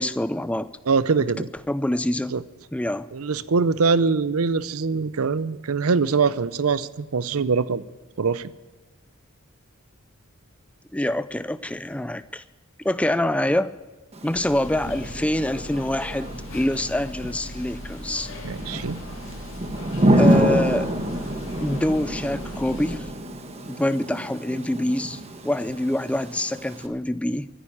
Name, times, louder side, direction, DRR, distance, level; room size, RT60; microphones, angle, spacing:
voice 1, 0.0-0.7 1.7-2.4 2.7-3.1 10.9-12.4 12.8-13.7 14.2-18.3 20.2-20.9 21.6-23.1 23.7-27.5, left 1 dB, 5° left, 14 dB, 0.4 m, -25 dB
voice 2, 0.9-1.5 2.3-2.4 3.1-7.8 8.2-8.5 18.4-19.0, right 4 dB, 80° right, 17 dB, 0.6 m, -23 dB
Thunder / Rain, 14.1-26.9, right 1 dB, 30° right, 1.2 m, -27 dB
sound 1, 14.3-23.0, left 1 dB, 65° left, 2.6 m, -38 dB
14.0 x 10.0 x 8.5 m, 1.3 s
head